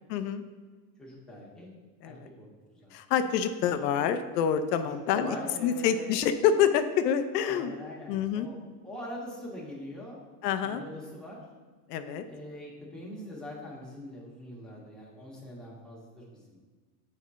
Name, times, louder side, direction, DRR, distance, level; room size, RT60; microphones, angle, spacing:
voice 1, 0.1-0.4 2.0-2.3 2.9-5.4 5.6-8.5 10.4-10.8 11.9-12.2, left 8 dB, 90° left, 9 dB, 0.6 m, -27 dB
voice 2, 1.0-1.7 2.0-2.9 4.8-6.2 7.4-8.6 8.8-10.2 10.6-11.4 12.2-16.6, left 1 dB, ahead, -5 dB, 1.4 m, -43 dB
7.4 x 4.3 x 3.6 m, 1.4 s
supercardioid pair, 145°, 47 cm